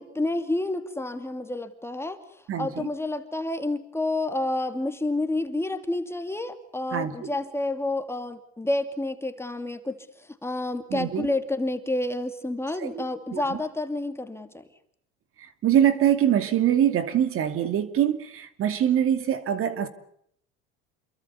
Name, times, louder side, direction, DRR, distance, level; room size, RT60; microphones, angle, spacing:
voice 1, 0.0-14.7, left 2 dB, 10° left, 2.4 m, -29 dB
voice 2, 2.5-2.9 6.9-7.3 10.9-11.3 12.8-13.0 13.3-13.6 15.4-19.9, right 10 dB, 45° right, 2.6 m, -24 dB
28.0 x 22.5 x 7.0 m
supercardioid pair, 105°, 30 cm